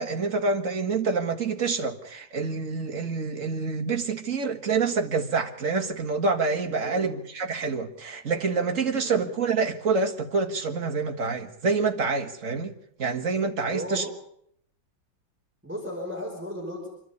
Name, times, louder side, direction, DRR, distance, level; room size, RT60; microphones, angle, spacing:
voice 1, 0.0-12.7 13.0-14.1, right 4 dB, 40° right, 2.0 m, -27 dB
voice 2, 8.9-9.3 13.7-14.1 15.6-16.9, left 1 dB, 5° right, 5.2 m, -35 dB
26.5 x 12.5 x 9.6 m
omnidirectional pair, 2.2 m